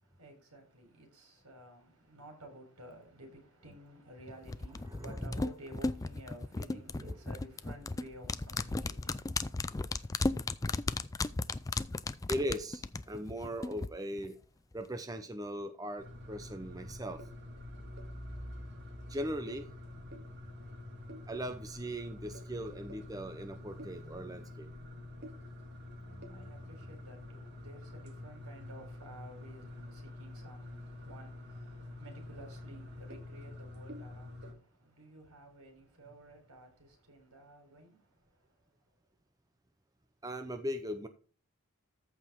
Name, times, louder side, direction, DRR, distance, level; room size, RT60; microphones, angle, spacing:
voice 1, 0.0-12.3 26.1-38.7, right 1 dB, 85° right, 4.0 m, -54 dB
sound 1, 4.5-13.9 14.2-14.3, left 3 dB, 15° left, 0.3 m, -35 dB
voice 2, 4.9-5.4 6.7-7.2 12.3-14.4 14.7-17.2 19.1-19.7 21.3-24.7 40.2-41.1, equal, 15° right, 0.7 m, -39 dB
sound 2, 16.0-34.5, left 1 dB, 50° right, 1.9 m, -47 dB
14.0 x 4.9 x 3.6 m
head